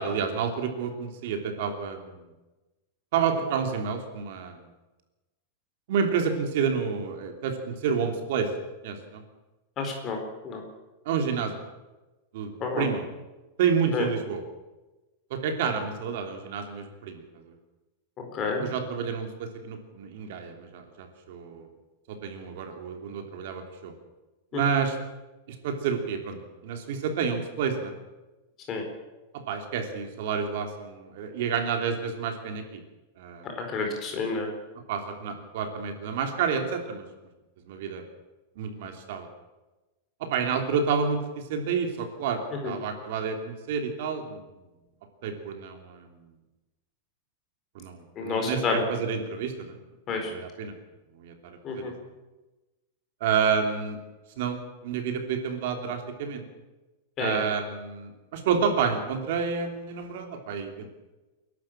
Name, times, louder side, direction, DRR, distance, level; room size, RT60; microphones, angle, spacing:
voice 1, 0.0-2.3 3.1-4.6 5.9-8.5 8.8-9.2 11.0-11.6 12.3-13.0 13.6-14.4 15.3-17.4 18.6-21.7 22.1-23.9 24.5-25.0 25.5-27.9 29.5-32.8 33.2-33.5 34.9-37.0 37.6-38.0 38.6-39.3 40.2-44.4 45.2-46.2 47.7-49.8 50.1-50.7 51.2-51.9 53.2-54.0 54.4-56.4 57.2-60.9, right 6 dB, 50° right, 5 dB, 3.1 m, -29 dB
voice 2, 9.8-10.2 10.4-10.6 12.6-12.9 13.9-14.1 18.3-18.6 24.5-24.6 28.7-28.8 33.4-34.5 42.6-42.7 48.2-48.8 50.1-50.3 51.6-51.9 57.2-57.4, left 4 dB, 20° left, 3 dB, 4.2 m, -29 dB
29.5 x 12.0 x 7.4 m, 1.1 s
supercardioid pair, 175°, 0 cm